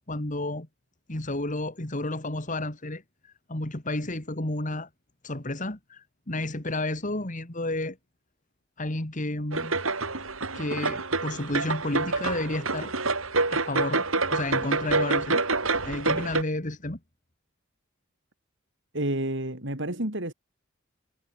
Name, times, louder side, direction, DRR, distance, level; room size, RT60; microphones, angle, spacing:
voice 1, 0.1-0.7 1.1-4.9 5.2-8.0 8.8-9.7 10.5-12.9 13.5-15.4 15.8-17.0, left 2 dB, 40° left, 2.5 m, -31 dB
sound 1, 9.5-16.4, right 3 dB, 85° right, 7.4 m, -27 dB
voice 2, 18.9-20.3, right 1 dB, 60° right, 5.1 m, -29 dB
head